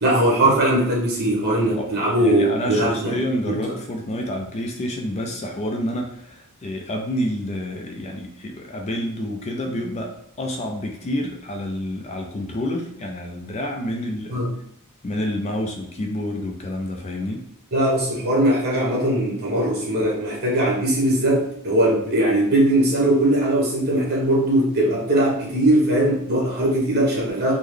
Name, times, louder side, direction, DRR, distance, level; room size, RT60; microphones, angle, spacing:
voice 1, 0.0-3.2 3.5-3.8 14.3-14.5 17.7-27.5, right 1 dB, 45° right, -3 dB, 1.1 m, -20 dB
voice 2, 2.2-14.4 15.0-17.4, left 1 dB, 30° left, 2 dB, 0.4 m, -28 dB
3.7 x 2.0 x 3.2 m, 0.73 s
head